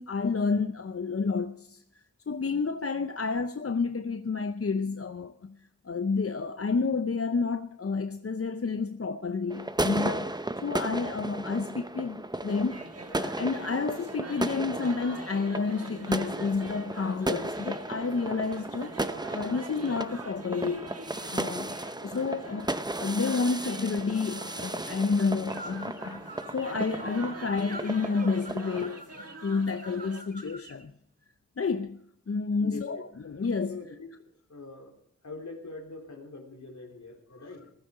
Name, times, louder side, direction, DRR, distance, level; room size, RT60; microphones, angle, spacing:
voice 1, 0.0-1.8 2.3-5.6 5.8-12.8 13.2-20.9 21.3-21.8 22.0-22.7 23.0-26.2 26.5-30.9 31.6-32.0 32.3-33.0 33.3-33.8, left 4 dB, 50° left, 0.7 m, -30 dB
sound 1, 9.5-28.9, right 2 dB, 15° right, 0.7 m, -35 dB
sound 2, 12.7-30.2, right 3 dB, 55° right, 1.3 m, -45 dB
Slide Whistel Bird, 25.5-30.8, right 2 dB, 30° right, 1.5 m, -46 dB
voice 2, 32.6-33.0 33.7-34.1 34.5-34.9 35.2-37.7, left 3 dB, 70° left, 3.4 m, -42 dB
15.0 x 12.5 x 4.9 m
wide cardioid pair, 55°, 29 cm